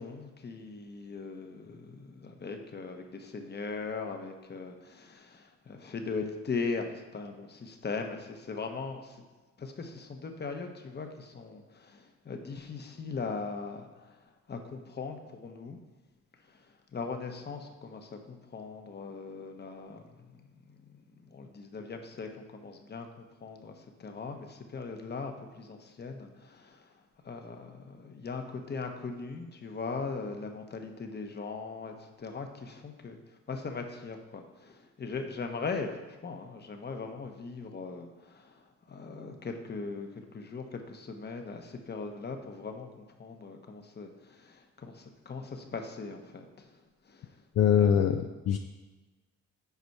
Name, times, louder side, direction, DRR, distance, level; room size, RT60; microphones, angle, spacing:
voice 1, 0.0-9.2 9.6-14.1 14.5-15.8 16.9-20.0 20.3-20.8 21.3-26.9 27.2-33.2 33.5-38.6 38.9-46.7 47.1-47.3 47.8-48.1, left 4 dB, 35° left, 5 dB, 1.1 m, -39 dB
voice 2, 47.6-48.6, left 8 dB, 55° left, 6 dB, 0.5 m, -23 dB
8.2 x 5.2 x 4.7 m, 1.2 s
cardioid pair, 90°, 30 cm